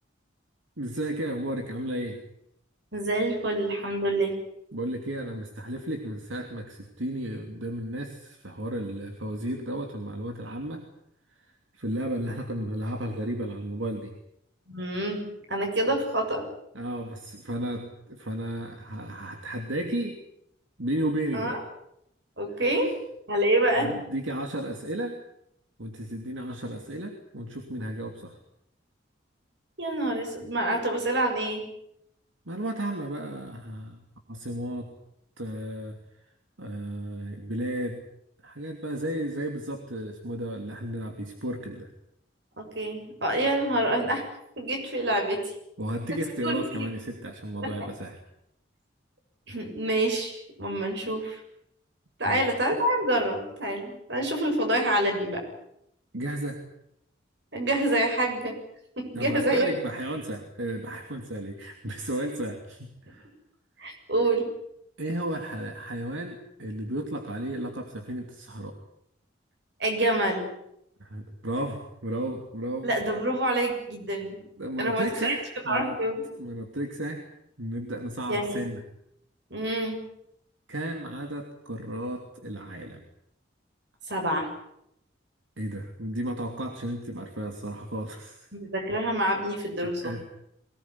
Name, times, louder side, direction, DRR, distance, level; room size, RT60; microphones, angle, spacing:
voice 1, 0.8-2.2 4.7-10.8 11.4-11.5 11.7-14.1 16.7-20.2 20.8-21.6 23.8-25.2 25.8-28.4 32.5-34.0 34.3-34.9 35.4-36.2 36.6-38.0 38.4-41.9 45.8-48.2 52.2-52.4 56.1-56.6 59.1-63.3 65.0-68.8 71.0-72.9 74.6-76.0 76.4-77.3 77.6-78.8 80.7-83.0 85.6-88.5 89.8-90.3, right 1 dB, 80° right, 4 dB, 2.9 m, -33 dB
voice 2, 2.9-4.3 14.7-15.2 15.5-16.4 21.3-21.6 22.4-22.9 23.3-23.9 29.8-31.6 42.6-44.3 44.6-45.5 46.4-46.9 47.6-47.7 49.5-51.4 52.2-55.4 57.5-58.6 59.0-59.7 63.8-64.5 69.8-70.5 72.8-74.4 74.8-75.4 75.7-76.3 78.3-78.7 79.5-80.0 84.1-84.5 88.5-90.1, right 1 dB, 60° right, 4 dB, 7.3 m, -27 dB
23.5 x 19.0 x 9.9 m, 0.77 s
head